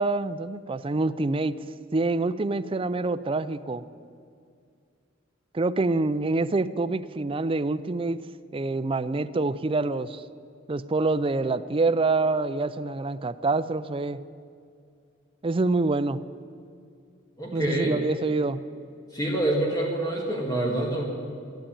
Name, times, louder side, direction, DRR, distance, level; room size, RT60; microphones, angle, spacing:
voice 1, 0.0-1.6 1.9-3.8 5.5-8.3 8.5-10.2 10.7-14.2 15.4-16.2 17.5-18.6, right 3 dB, 25° right, 12 dB, 0.4 m, -26 dB
voice 2, 17.4-18.0 19.1-21.0, right 1 dB, 20° left, -2 dB, 2.0 m, -26 dB
14.0 x 11.5 x 8.8 m, 2.3 s
head